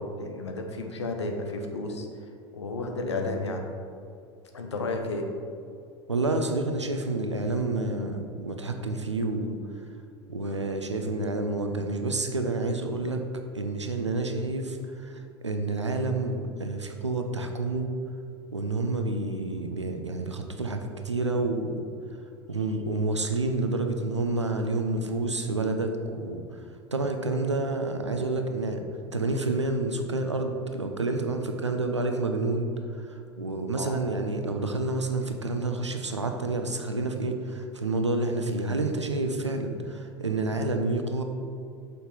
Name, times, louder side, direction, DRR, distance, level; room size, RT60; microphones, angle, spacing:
voice 1, 0.0-2.1 2.5-3.6 4.5-5.3 33.8-34.0, left 2 dB, 75° left, 3 dB, 0.8 m, -32 dB
voice 2, 6.1-9.6 10.3-13.2 13.5-17.9 18.5-21.8 22.5-26.4 26.9-28.8 29.1-32.7 33.0-41.2, right 2 dB, 85° right, 5 dB, 0.6 m, -29 dB
6.5 x 5.3 x 3.9 m, 2.4 s
figure-of-eight pair, 75°, 15 cm